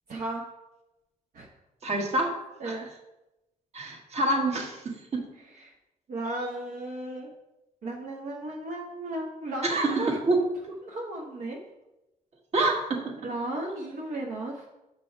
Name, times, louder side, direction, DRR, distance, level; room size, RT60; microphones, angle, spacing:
voice 1, 0.1-0.4 1.3-1.5 2.6-2.9 5.5-5.7 6.1-7.3 7.8-10.2 10.8-11.6 13.2-14.7, right 1 dB, 70° right, -2 dB, 1.1 m, -35 dB
voice 2, 1.8-2.3 2.6-2.8 3.7-5.3 9.6-10.4 12.5-13.1, right 2 dB, 45° right, 1 dB, 1.5 m, -27 dB
6.8 x 5.3 x 4.5 m, 0.97 s
cardioid pair, 105°, 15 cm